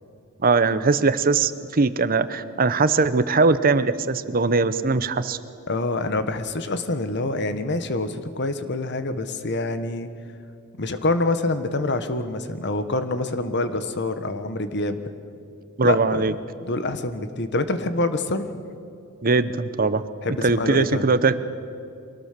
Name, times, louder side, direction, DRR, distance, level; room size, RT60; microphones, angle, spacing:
voice 1, 0.4-5.4 15.8-16.3 19.2-20.0 20.4-21.4, right 4 dB, 45° right, 13 dB, 0.8 m, -20 dB
voice 2, 5.7-10.1 10.8-15.0 15.8-16.3 16.6-18.5 20.2-21.0, left 2 dB, 55° left, 10 dB, 1.4 m, -26 dB
24.0 x 18.5 x 6.8 m, 2.5 s
head